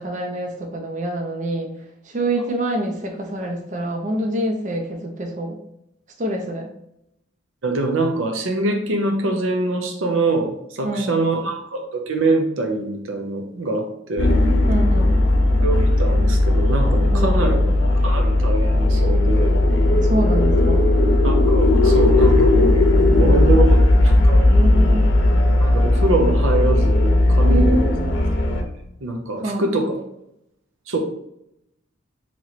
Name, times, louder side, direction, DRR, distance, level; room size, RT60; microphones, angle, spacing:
voice 1, 0.0-1.7 2.1-5.6 6.2-6.7 10.8-11.2 14.7-15.2 17.1-17.6 19.9-20.8 23.1-23.7 24.5-25.1 27.5-28.1 29.4-29.8, right 1 dB, 40° right, 2 dB, 0.5 m, -26 dB
voice 2, 7.6-14.4 15.6-17.6 18.0-19.5 21.2-22.8 23.1-24.4 25.6-27.9 28.5-28.6 29.0-30.0 30.9-31.0, right 2 dB, 90° right, 4 dB, 0.6 m, -24 dB
sound 1, 14.2-28.6, left 1 dB, 75° left, 0.7 m, -16 dB
3.0 x 3.0 x 4.0 m, 0.78 s
head